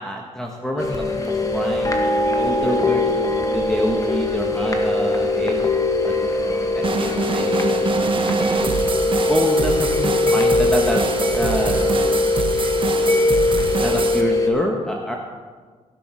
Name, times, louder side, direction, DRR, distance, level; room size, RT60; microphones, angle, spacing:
voice 1, 0.0-5.6 6.1-7.9 9.3-11.0 11.3-11.9 13.8-15.2, equal, 5° left, 0 dB, 1.4 m, -27 dB
sound 1, 0.8-14.5, left 2 dB, 25° left, 1.8 m, -21 dB
sound 2, 6.8-14.2, right 4 dB, 40° right, 1.1 m, -25 dB
16.0 x 6.2 x 6.2 m, 1.5 s
cardioid pair, 80°, 13 cm